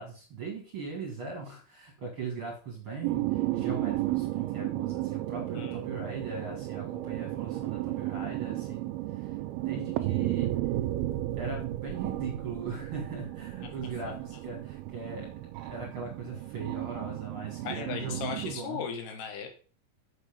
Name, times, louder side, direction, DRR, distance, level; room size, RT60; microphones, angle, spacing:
voice 1, 0.0-8.9 9.1-9.3 9.6-10.5 11.4-15.3 15.6-18.8, right 4 dB, 45° right, 1 dB, 2.0 m, -39 dB
sound 1, 3.0-18.6, right 15 dB, 80° right, 2.5 m, -33 dB
voice 2, 17.4-19.5, left 7 dB, 85° left, 5 dB, 3.6 m, -37 dB
8.2 x 6.5 x 5.0 m, 0.38 s
omnidirectional pair, 4.5 m